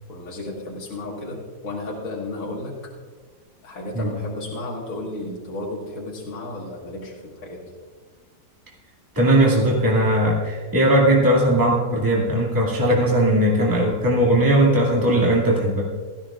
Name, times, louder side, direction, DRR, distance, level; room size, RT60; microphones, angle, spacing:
voice 1, 0.1-2.9 3.6-7.7, left 2 dB, 55° left, -3 dB, 2.1 m, -33 dB
voice 2, 9.2-15.9, right 1 dB, 10° right, -4 dB, 2.1 m, -18 dB
17.5 x 13.5 x 2.4 m, 1.5 s
omnidirectional pair, 1.8 m